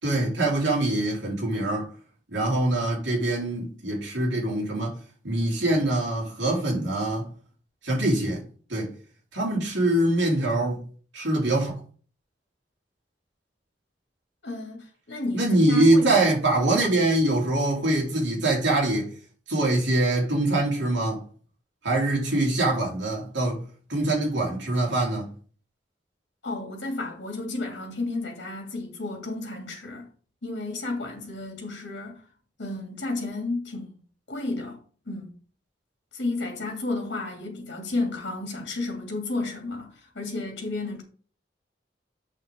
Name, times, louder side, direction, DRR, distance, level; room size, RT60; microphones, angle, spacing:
voice 1, 0.0-1.9 2.3-4.9 5.2-7.3 7.8-8.4 8.7-8.9 9.3-10.8 11.1-11.8 15.3-19.1 19.5-21.2 21.8-23.6 23.9-25.3, right 2 dB, 75° right, 3.7 m, -24 dB
voice 2, 14.4-16.1 26.4-30.1 30.4-32.2 32.6-34.0 34.3-35.3 36.1-41.0, left 2 dB, 70° left, 2.5 m, -32 dB
7.4 x 6.5 x 3.8 m
head